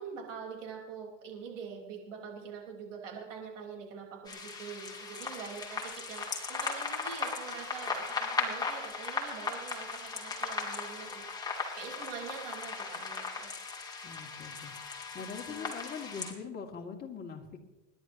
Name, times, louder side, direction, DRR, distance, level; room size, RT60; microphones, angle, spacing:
voice 1, 0.0-13.5 15.4-15.7, right 6 dB, 80° right, 0 dB, 4.9 m, -45 dB
sound 1, 4.3-16.3, left 4 dB, 10° left, 2.7 m, -37 dB
voice 2, 14.0-14.7 15.1-17.6, left 6 dB, 25° left, 0 dB, 2.6 m, -42 dB
29.0 x 11.0 x 3.1 m, 1.1 s
supercardioid pair, 110°, 36 cm